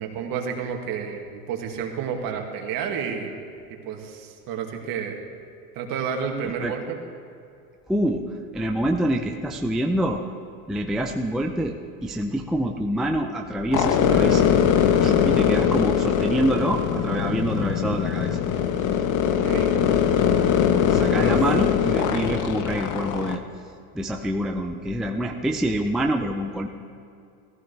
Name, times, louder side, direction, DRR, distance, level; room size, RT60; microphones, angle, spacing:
voice 1, 0.0-3.4 3.9-5.2 5.7-7.0 19.4-19.7 21.1-21.3 22.1-22.3, right 7 dB, 50° right, 2 dB, 2.0 m, -30 dB
voice 2, 7.9-10.2 10.7-11.8 12.0-14.5 15.0-18.4 20.9-23.4 23.9-26.7, right 1 dB, ahead, 3 dB, 0.4 m, -26 dB
sound 1, 13.7-23.4, left 8 dB, 45° left, 0.9 m, -21 dB
16.0 x 14.5 x 3.3 m, 2.5 s
hypercardioid pair, 105°, 45 cm